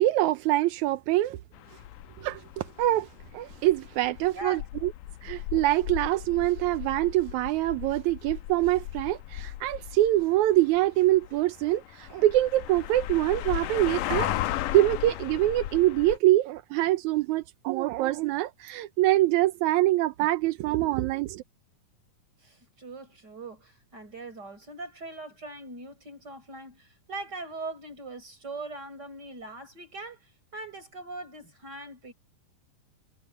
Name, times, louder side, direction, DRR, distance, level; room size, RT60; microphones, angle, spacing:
voice 1, 0.0-1.4 2.2-3.1 3.3-4.9 5.2-21.4, right 15 dB, 80° right, 1.7 m, -25 dB
sound 1, 1.5-16.2, left 14 dB, 80° left, 2.3 m, -36 dB
voice 2, 4.3-4.7 22.4-30.2 30.5-32.1, right 2 dB, 25° right, 7.1 m, -41 dB
omnidirectional pair, 4.1 m